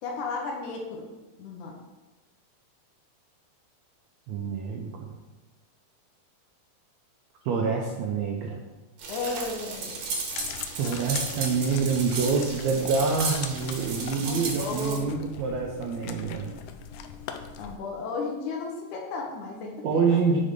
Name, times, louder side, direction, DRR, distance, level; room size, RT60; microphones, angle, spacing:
voice 1, 0.0-1.1 1.4-1.8 9.1-10.0 14.2-15.1 17.6-20.2, left 3 dB, 70° left, 0 dB, 2.1 m, -34 dB
voice 2, 4.3-5.1 7.4-8.6 10.7-16.6 19.8-20.4, right 5 dB, 90° right, 1 dB, 1.5 m, -26 dB
sound 1, 9.0-15.0, right 4 dB, 70° right, 2.4 m, -34 dB
sound 2, 10.3-17.8, left 8 dB, 90° left, 1.7 m, -41 dB
6.5 x 4.2 x 5.1 m, 1.2 s
omnidirectional pair, 4.0 m